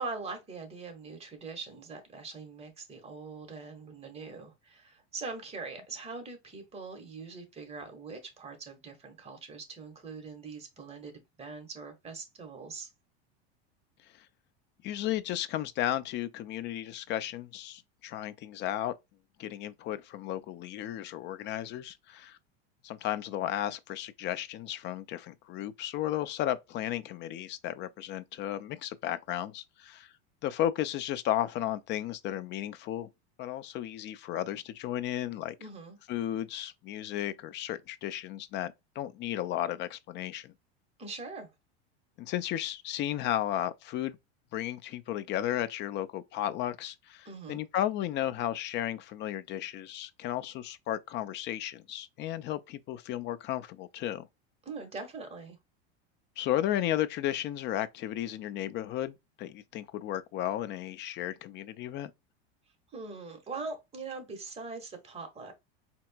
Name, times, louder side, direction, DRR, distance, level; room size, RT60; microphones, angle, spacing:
voice 1, 0.0-11.1 11.4-12.9 35.6-36.0 41.0-41.5 47.2-47.6 54.6-55.6 62.9-65.5, right 4 dB, 20° right, 1.2 m, -42 dB
voice 2, 14.8-18.9 19.4-22.4 22.8-30.1 30.4-33.1 33.4-35.5 36.1-40.5 42.2-44.2 44.5-54.3 56.4-62.1, left 12 dB, 35° left, 0.4 m, -34 dB
4.3 x 2.9 x 2.2 m
supercardioid pair, 125°, 32 cm